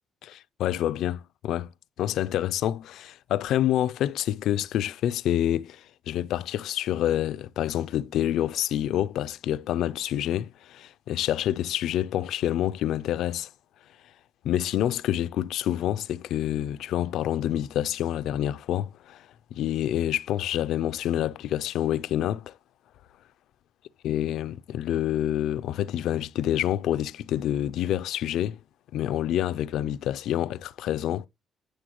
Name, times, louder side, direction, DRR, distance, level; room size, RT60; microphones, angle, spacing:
voice 1, 0.2-1.7 2.0-13.5 14.4-22.6 24.0-28.6 28.9-31.3, left 12 dB, 80° left, 0.4 m, -27 dB
10.0 x 6.5 x 3.0 m
cardioid pair, 90°, 0 cm